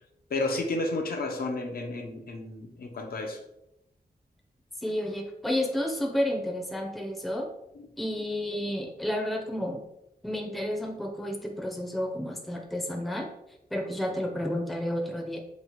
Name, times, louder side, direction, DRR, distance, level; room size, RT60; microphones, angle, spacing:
voice 1, 0.3-3.4, left 2 dB, 60° left, 3 dB, 0.4 m, -31 dB
voice 2, 4.8-7.5 8.0-9.8 10.2-13.3 13.7-15.4, left 1 dB, ahead, 1 dB, 0.4 m, -31 dB
3.0 x 2.0 x 2.9 m, 0.83 s
wide cardioid pair, 110°, 17 cm